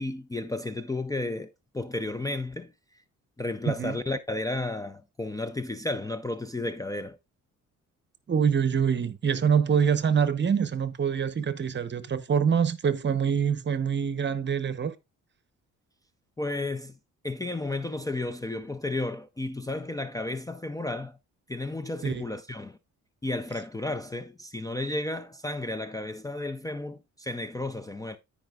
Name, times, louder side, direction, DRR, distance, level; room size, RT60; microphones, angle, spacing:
voice 1, 0.0-2.7 3.4-7.2 16.4-16.9 17.2-21.2 21.5-22.8 23.2-28.2, left 2 dB, 10° left, 0.5 m, -33 dB
voice 2, 3.7-4.0 8.3-14.9 22.0-22.2, right 7 dB, 40° right, 0.9 m, -25 dB
14.5 x 5.1 x 2.4 m
cardioid pair, 90°, 30 cm